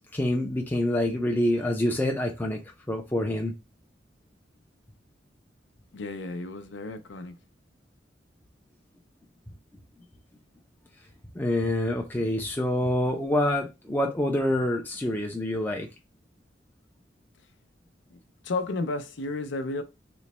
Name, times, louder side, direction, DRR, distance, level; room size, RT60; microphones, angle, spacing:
voice 1, 0.1-2.6 2.9-3.5 11.3-15.9, left 1 dB, 10° left, 0.4 m, -26 dB
voice 2, 5.9-7.3 18.1-19.8, left 3 dB, 75° left, 0.5 m, -33 dB
3.1 x 2.1 x 4.1 m
head